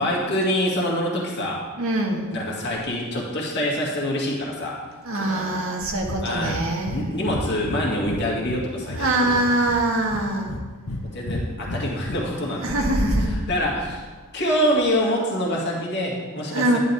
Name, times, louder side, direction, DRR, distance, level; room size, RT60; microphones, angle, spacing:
voice 1, 0.0-1.6 2.3-4.8 5.1-5.6 6.2-6.6 6.9-9.6 11.0-14.0 14.3-16.8, equal, 55° left, -3 dB, 2.2 m, -26 dB
voice 2, 1.8-2.3 5.0-7.1 8.9-10.5 12.6-13.3 16.5-16.8, right 1 dB, 65° right, 0 dB, 1.6 m, -23 dB
Breathing, 6.0-6.2 6.4-6.6 6.9-7.0 7.3-8.6 8.9-9.8 10.1-11.0 11.3-12.2, left 2 dB, 75° left, 0.9 m, -31 dB
11.0 x 11.0 x 3.5 m, 1.3 s
head